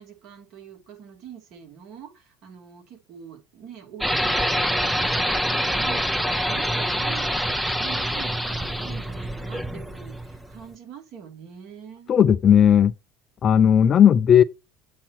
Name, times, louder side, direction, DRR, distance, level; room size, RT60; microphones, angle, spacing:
voice 1, 0.0-12.1, right 8 dB, 55° right, 2.7 m, -44 dB
sound 1, 4.0-10.6, equal, ahead, 0.6 m, -25 dB
voice 2, 12.1-12.9 13.4-14.4, left 9 dB, 35° left, 0.4 m, -15 dB
8.4 x 2.9 x 5.8 m
supercardioid pair, 115°, 0 cm